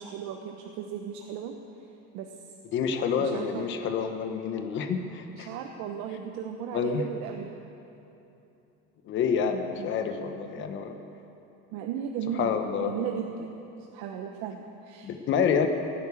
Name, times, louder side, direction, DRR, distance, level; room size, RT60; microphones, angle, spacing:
voice 1, 0.0-1.6 2.1-2.3 3.2-3.7 5.3-7.5 9.6-9.9 10.2-10.7 11.7-12.5 12.8-13.5 13.8-15.1, right 8 dB, 70° right, 4 dB, 1.1 m, -36 dB
voice 2, 2.7-5.5 6.7-7.0 9.0-10.9 12.3-12.9 15.0-15.7, left 6 dB, 40° left, 6 dB, 1.1 m, -28 dB
17.0 x 9.9 x 8.4 m, 2.9 s
cardioid pair, 180°, 30 cm